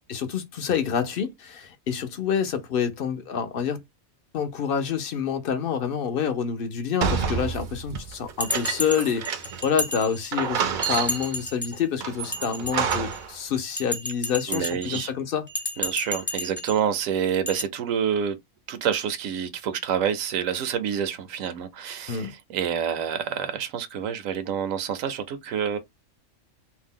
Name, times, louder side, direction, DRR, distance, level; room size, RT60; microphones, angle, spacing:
voice 1, 0.1-3.8 4.3-15.5 22.1-22.3, left 7 dB, 60° left, 0.6 m, -27 dB
sound 1, 7.0-9.7 10.0-10.1 10.3-11.4 12.0-13.3, right 6 dB, 60° right, 0.5 m, -29 dB
Bell, 8.4-10.5 10.8-11.8 12.2-13.3 13.8-15.0 15.5-16.8 17.5-17.6, left 1 dB, 15° left, 0.4 m, -32 dB
voice 2, 14.5-15.1 15.8-18.4 18.7-25.8, right 8 dB, 85° right, 1.0 m, -27 dB
2.7 x 2.1 x 3.5 m
omnidirectional pair, 1.4 m